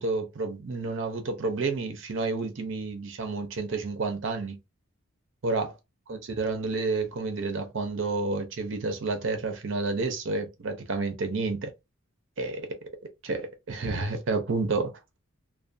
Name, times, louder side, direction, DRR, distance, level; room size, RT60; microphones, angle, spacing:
voice 1, 0.0-4.6 5.4-5.7 6.1-11.7 12.4-12.7 13.2-15.2, right 3 dB, 60° right, 0.5 m, -30 dB
2.4 x 2.1 x 2.4 m
head